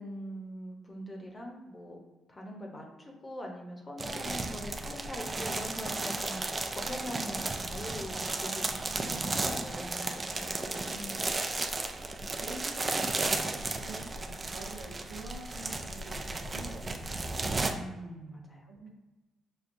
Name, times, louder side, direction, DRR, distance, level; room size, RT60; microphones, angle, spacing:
voice 1, 0.0-2.0 2.3-11.2 17.7-18.9, equal, 25° left, 0 dB, 0.8 m, -42 dB
sound 1, 4.0-17.7, right 3 dB, 25° right, 0.4 m, -34 dB
voice 2, 8.9-9.9 12.4-17.7 18.7-18.9, right 2 dB, 85° right, -2 dB, 0.9 m, -47 dB
6.0 x 2.2 x 2.6 m, 1.1 s
cardioid pair, 90°, 0 cm